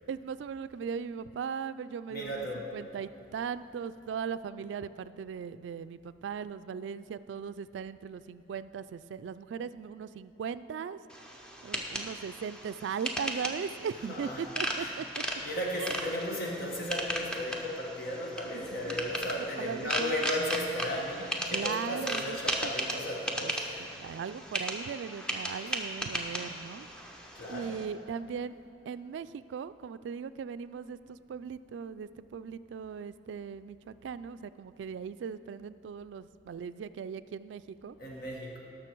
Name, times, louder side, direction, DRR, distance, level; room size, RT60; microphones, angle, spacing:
voice 1, 0.1-2.5 2.7-11.0 11.6-15.2 15.8-16.4 18.5-19.1 19.6-20.1 21.5-22.4 22.6-22.7 23.4-23.5 23.9-26.9 27.5-28.6 28.9-38.0, right 6 dB, 75° right, 14 dB, 0.3 m, -38 dB
voice 2, 2.1-2.7 14.1-14.5 14.8-14.9 15.4-23.9 27.3-27.8 38.0-38.6, left 1 dB, 55° left, -1 dB, 1.3 m, -35 dB
sound 1, 11.1-27.9, equal, 5° left, 0.8 m, -37 dB
18.0 x 6.3 x 4.5 m, 2.7 s
head